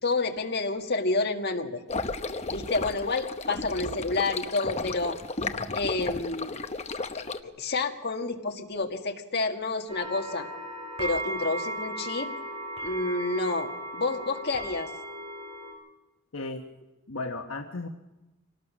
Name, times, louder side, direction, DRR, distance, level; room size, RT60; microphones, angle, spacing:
voice 1, 0.0-1.8 2.5-5.2 5.8-6.6 7.2-10.5 11.0-12.3 12.8-14.9, left 3 dB, 50° left, 3 dB, 1.8 m, -29 dB
sound 1, 1.9-7.4, left 3 dB, 30° left, 0.9 m, -34 dB
sound 2, 9.9-15.7, right 1 dB, 25° right, 4.9 m, -36 dB
voice 2, 16.3-16.6 17.1-17.9, left 3 dB, 70° left, 3 dB, 1.2 m, -34 dB
25.5 x 18.5 x 6.2 m, 1.0 s
head